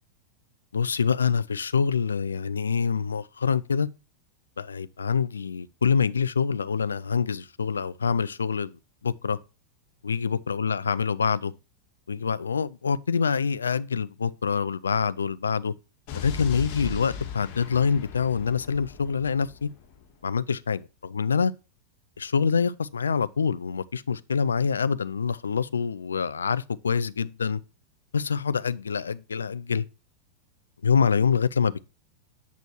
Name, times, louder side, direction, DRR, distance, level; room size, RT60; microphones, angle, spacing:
voice 1, 0.7-3.9 4.6-8.8 9.0-9.4 10.0-11.5 12.1-15.7 16.1-19.7 20.2-21.5 22.2-27.6 28.1-29.8 30.8-31.9, left 6 dB, 85° left, 0.3 m, -26 dB
Explosion, 16.1-20.1, left 7 dB, 50° left, 2.4 m, -38 dB
8.3 x 6.2 x 2.7 m
hypercardioid pair, 95°, 0 cm